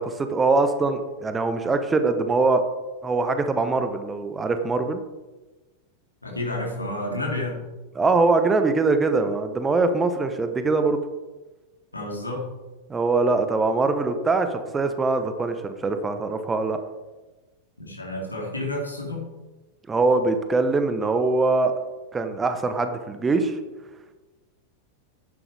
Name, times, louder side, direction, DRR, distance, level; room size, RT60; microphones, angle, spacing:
voice 1, 0.0-2.6 3.0-5.0 7.9-11.0 12.9-16.8 19.9-21.7 22.1-23.6, right 3 dB, 15° right, 9 dB, 1.0 m, -22 dB
voice 2, 6.2-7.6 11.9-12.5 17.8-19.3, left 1 dB, 80° left, -1 dB, 2.9 m, -30 dB
11.0 x 10.0 x 3.5 m, 1.2 s
figure-of-eight pair, 90°, 0 cm